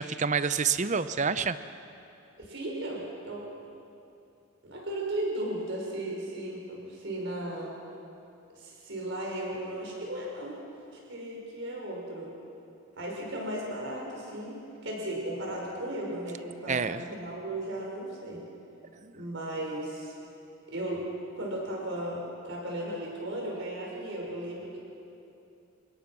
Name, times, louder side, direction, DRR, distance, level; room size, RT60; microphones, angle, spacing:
voice 1, 0.0-1.6 16.7-17.0 19.0-19.1, right 5 dB, 35° right, 13 dB, 0.6 m, -28 dB
voice 2, 2.4-3.5 4.6-7.7 8.5-10.6 11.1-12.3 13.0-14.6 14.8-18.4 19.1-20.2 20.7-21.1 21.3-24.8, right 1 dB, 60° right, -2 dB, 6.1 m, -35 dB
29.0 x 17.5 x 6.1 m, 2.7 s
head